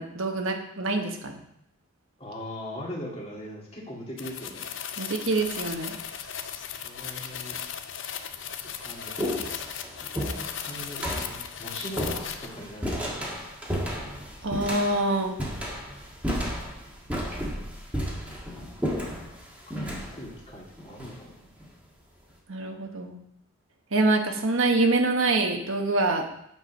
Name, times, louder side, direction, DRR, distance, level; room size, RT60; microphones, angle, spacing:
voice 1, 0.0-1.4 5.0-6.0 14.4-15.4 22.5-23.2 23.9-26.2, right 2 dB, 65° right, 3 dB, 1.1 m, -25 dB
voice 2, 2.2-4.7 6.8-7.6 8.6-9.1 10.6-13.3 19.7-21.3, equal, 30° left, -3 dB, 2.1 m, -40 dB
sound 1, 4.2-12.6, left 8 dB, 60° left, 0.6 m, -37 dB
sound 2, 5.4-5.8 6.8-6.9 7.7-7.8 8.2-21.7, equal, 5° right, 1.4 m, -33 dB
9.0 x 4.6 x 5.6 m, 0.74 s
head